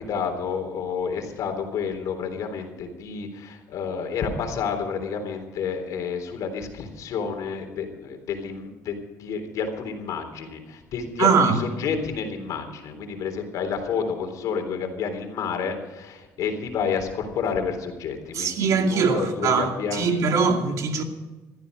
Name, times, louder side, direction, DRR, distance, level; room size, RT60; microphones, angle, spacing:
voice 1, 0.0-20.2, left 6 dB, 65° left, 3.6 m, -30 dB
voice 2, 11.2-11.6 18.3-21.0, right 5 dB, 60° right, 2.5 m, -22 dB
16.0 x 14.0 x 5.3 m
cardioid pair, 100°, 6 cm